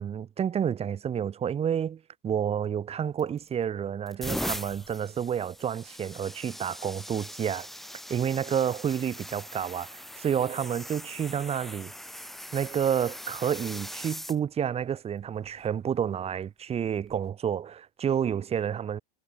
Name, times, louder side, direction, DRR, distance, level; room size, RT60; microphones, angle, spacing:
voice 1, 0.0-7.7 8.1-11.9 12.5-19.0, right 8 dB, 20° right, 0.9 m, -29 dB
sound 1, 3.2-3.5 4.0-14.4 15.2-15.5 17.0-17.2, equal, ahead, 1.6 m, -40 dB
supercardioid pair, 125°, 30 cm